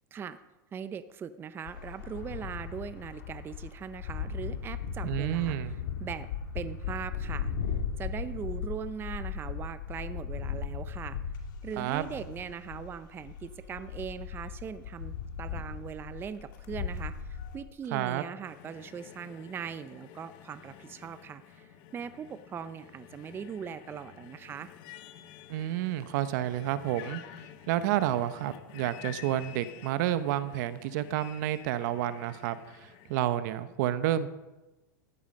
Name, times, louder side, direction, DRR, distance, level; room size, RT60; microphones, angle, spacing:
voice 1, 0.7-6.3 6.5-7.5 8.0-11.2 11.6-24.7, right 7 dB, 20° right, 12 dB, 0.5 m, -40 dB
sound 1, 1.7-17.6, left 7 dB, 75° left, 2.3 m, -37 dB
voice 2, 5.0-5.7 11.8-12.0 17.9-18.2 25.5-27.2 27.7-34.3, right 12 dB, 60° right, 13 dB, 0.9 m, -30 dB
sound 2, 18.4-33.3, left 11 dB, 50° left, 1.2 m, -50 dB
14.5 x 11.5 x 5.3 m, 1.1 s
supercardioid pair, 130°, 11 cm